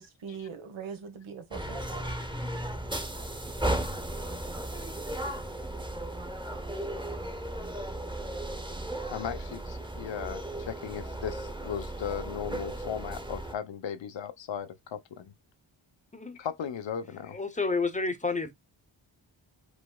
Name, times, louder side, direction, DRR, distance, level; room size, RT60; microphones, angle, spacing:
voice 1, 0.0-2.1, right 6 dB, 85° right, 1.3 m, -41 dB
sound 1, 1.5-13.5, right 1 dB, 10° right, 1.0 m, -35 dB
voice 2, 9.1-15.3 16.4-17.4, left 8 dB, 70° left, 0.8 m, -37 dB
voice 3, 17.3-18.5, left 4 dB, 15° left, 0.8 m, -30 dB
5.2 x 3.3 x 2.2 m
wide cardioid pair, 90°, 47 cm